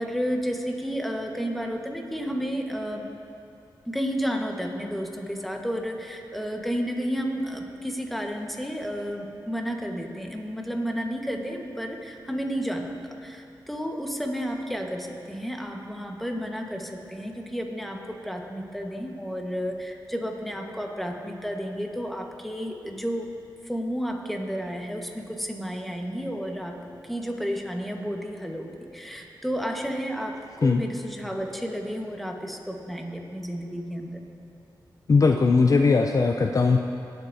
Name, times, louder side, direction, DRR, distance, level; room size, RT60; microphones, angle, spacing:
voice 1, 0.0-3.0 3.8-23.3 23.6-26.8 27.0-34.2, equal, ahead, 1 dB, 1.4 m, -31 dB
voice 2, 35.1-36.8, left 4 dB, 45° left, 4 dB, 0.4 m, -19 dB
19.0 x 8.0 x 2.8 m, 2.6 s
cardioid pair, 60°, 8 cm